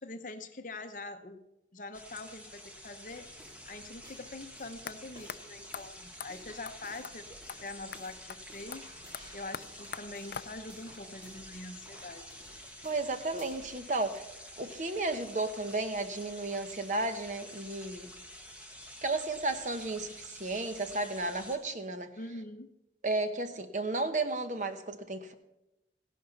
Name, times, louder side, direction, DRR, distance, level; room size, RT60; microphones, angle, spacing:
voice 1, 0.0-1.4 1.7-3.3 3.7-7.3 7.6-8.9 9.3-12.2 22.2-22.7, left 2 dB, 45° left, 8 dB, 0.8 m, -44 dB
sound 1, 1.9-21.6, equal, 10° right, 1.3 m, -49 dB
sound 2, 3.1-13.8, equal, 25° right, 2.9 m, -56 dB
sound 3, 4.9-5.0 5.3-5.4 5.7-5.8 6.2-6.3 6.7-6.8 7.0-7.2 7.5-7.6 7.9-8.0 8.3-8.4 8.7-10.8, left 8 dB, 60° left, 0.4 m, -43 dB
voice 2, 12.8-14.3 14.6-18.1 19.0-22.1 23.0-25.3, right 2 dB, 45° right, 8 dB, 0.9 m, -33 dB
16.0 x 11.5 x 4.0 m, 0.91 s
head